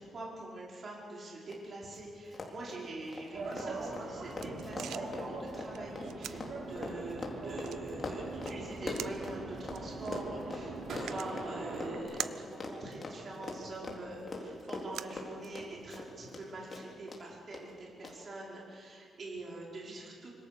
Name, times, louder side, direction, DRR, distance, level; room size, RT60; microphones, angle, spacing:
voice 1, 0.0-20.3, right 2 dB, 40° right, -3 dB, 5.1 m, -45 dB
Run, 1.5-1.6 1.8-2.0 2.3-9.8 10.1-16.4 16.7-17.2 17.5-17.6 18.0-18.1, left 3 dB, 35° left, 3.7 m, -42 dB
sound 1, 3.3-12.0, right 2 dB, 65° right, 6.8 m, -41 dB
sound 2, 3.8-15.9, right 10 dB, 90° right, 0.8 m, -48 dB
26.0 x 26.0 x 6.9 m, 2.3 s
cardioid pair, 135°, 0 cm